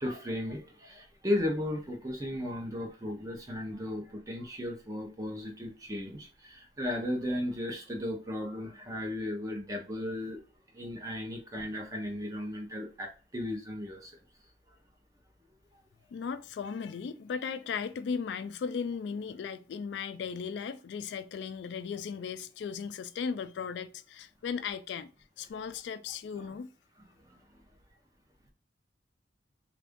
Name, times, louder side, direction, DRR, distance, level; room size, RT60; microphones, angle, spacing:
voice 1, 0.0-10.4 10.7-14.1 26.3-26.4, left 1 dB, 20° right, 0.7 m, -35 dB
voice 2, 16.1-25.1 25.4-26.7, left 6 dB, 65° left, 0.3 m, -36 dB
3.5 x 2.5 x 3.5 m
head